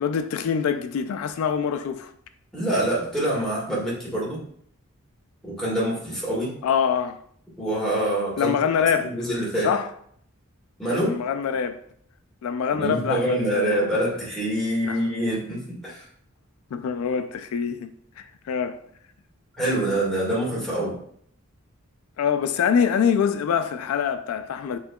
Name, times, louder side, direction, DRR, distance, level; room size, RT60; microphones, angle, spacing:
voice 1, 0.0-2.1 6.6-7.2 8.4-9.2 9.6-9.9 11.1-11.8 12.4-13.9 14.8-15.0 16.7-17.9 18.2-18.8 22.2-24.8, left 7 dB, 85° left, 0.3 m, -25 dB
voice 2, 2.5-4.4 5.4-6.5 7.6-8.5 9.0-9.7 10.8-11.2 12.7-16.0 19.6-20.9, right 1 dB, ahead, 1.6 m, -25 dB
7.9 x 2.8 x 2.2 m
head